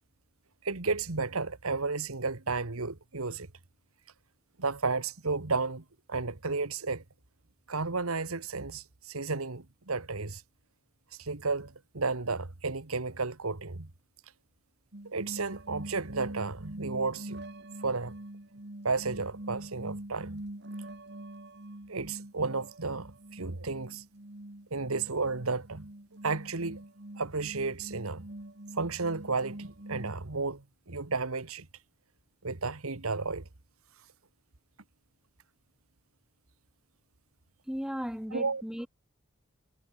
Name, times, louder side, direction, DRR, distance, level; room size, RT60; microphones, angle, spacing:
voice 1, 0.6-3.5 4.6-7.0 7.7-10.4 11.2-13.9 15.0-17.4 17.8-18.2 18.8-20.4 21.9-24.0 24.7-25.9 26.2-26.8 27.2-28.2 28.7-31.7 32.4-33.5 38.3-38.6, right 4 dB, 85° right, 1.7 m, -33 dB
sound 1, 14.9-30.1, right 1 dB, 50° right, 2.1 m, -44 dB
voice 2, 37.7-38.9, equal, 5° right, 0.8 m, -36 dB
head